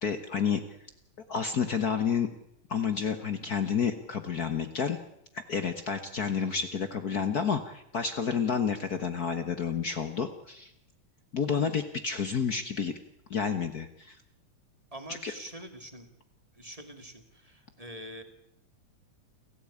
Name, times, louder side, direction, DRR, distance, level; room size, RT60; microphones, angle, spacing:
voice 1, 0.0-0.6 1.3-2.3 2.7-5.0 5.3-10.7 11.3-13.0 13.3-14.2 15.2-15.3, left 6 dB, 75° left, 9 dB, 0.8 m, -30 dB
voice 2, 14.9-16.1 16.5-18.2, equal, 15° right, 6 dB, 1.9 m, -45 dB
29.0 x 16.0 x 8.6 m, 0.78 s
omnidirectional pair, 3.7 m